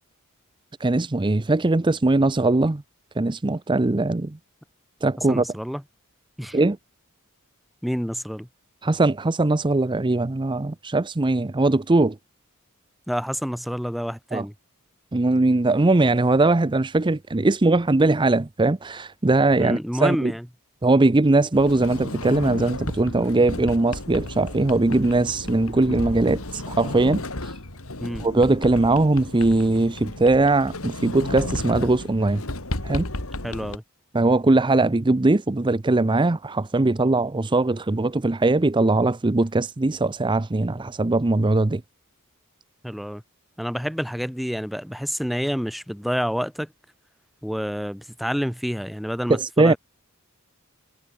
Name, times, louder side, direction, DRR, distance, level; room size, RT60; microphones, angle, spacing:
voice 1, 0.8-2.8 3.2-4.4 5.0-5.5 6.5-6.8 8.8-12.2 14.3-14.4 15.1-20.3 20.8-27.5 28.2-32.4 32.8-33.1 34.1-41.8 49.3-49.7, right 2 dB, 20° right, 0.6 m, -20 dB
voice 2, 5.2-5.8 6.4-6.6 7.8-8.5 13.1-14.5 19.6-20.5 28.0-28.2 33.4-33.8 42.8-43.2 43.6-46.7 47.4-49.8, equal, ahead, 5.6 m, -28 dB
Sliding door, 21.5-33.8, left 1 dB, 65° left, 3.6 m, -33 dB
head